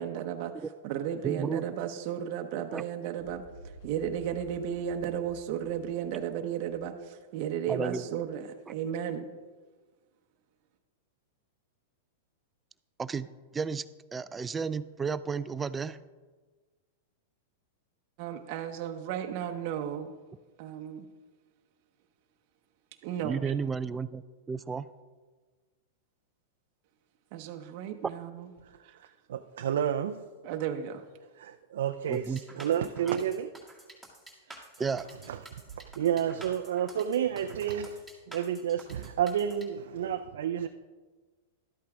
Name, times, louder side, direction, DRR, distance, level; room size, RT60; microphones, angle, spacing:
voice 1, 0.0-3.4 3.8-9.3 18.2-20.1 20.6-21.1 23.0-23.4 27.3-28.5 28.8-29.0 30.4-31.0, right 9 dB, 50° right, 5 dB, 0.8 m, -34 dB
voice 2, 1.2-1.6 2.7-2.8 7.7-8.0 13.0-13.9 14.1-16.0 23.2-24.9 32.1-32.4 33.1-33.2 34.8-35.1, right 5 dB, 15° right, 15 dB, 0.4 m, -33 dB
sound 1, 3.2-7.0, right 1 dB, 60° left, 1.8 m, -51 dB
voice 3, 28.6-30.2 31.4-33.5 34.5-34.6 35.3-35.4 35.8-40.7, right 9 dB, 75° right, 6 dB, 0.4 m, -31 dB
sound 2, 32.1-39.7, right 2 dB, ahead, 2.0 m, -50 dB
12.5 x 8.5 x 3.5 m, 1.4 s
hypercardioid pair, 125°, 0 cm